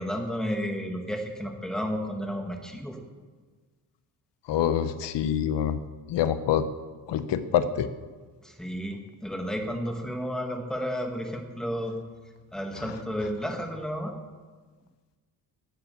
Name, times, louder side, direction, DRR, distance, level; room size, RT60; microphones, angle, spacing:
voice 1, 0.0-3.0 8.4-12.0 12.5-14.1, equal, ahead, 3 dB, 1.4 m, -32 dB
voice 2, 4.5-5.8 6.1-6.7 7.1-7.9, left 9 dB, 85° left, 12 dB, 0.8 m, -25 dB
13.0 x 7.2 x 8.1 m, 1.4 s
wide cardioid pair, 160°, 41 cm